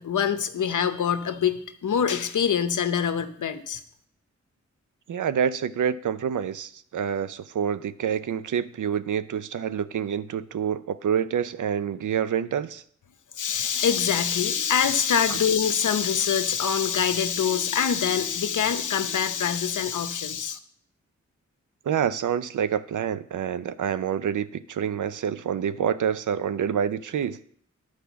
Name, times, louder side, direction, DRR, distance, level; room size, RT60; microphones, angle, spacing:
voice 1, 0.0-3.8 13.4-20.6, left 7 dB, 85° left, 10 dB, 0.8 m, -24 dB
voice 2, 5.1-12.8 15.3-15.4 21.9-27.4, right 8 dB, 90° right, 14 dB, 0.5 m, -27 dB
10.5 x 4.9 x 7.0 m, 0.63 s
wide cardioid pair, 70°, 30 cm